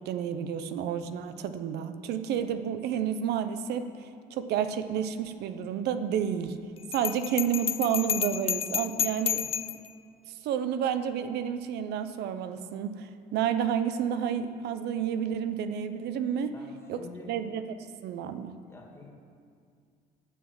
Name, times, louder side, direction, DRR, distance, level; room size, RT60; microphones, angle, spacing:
voice 1, 0.0-6.6 6.9-9.4 10.4-16.5 16.9-18.6, right 8 dB, 75° right, 10 dB, 0.7 m, -30 dB
Bell, 6.9-9.9, left 9 dB, 35° left, 0.4 m, -30 dB
voice 2, 16.5-17.4 18.7-19.1, left 4 dB, 15° left, -1 dB, 1.9 m, -48 dB
9.0 x 6.4 x 7.3 m, 2.2 s
cardioid pair, 110°, 17 cm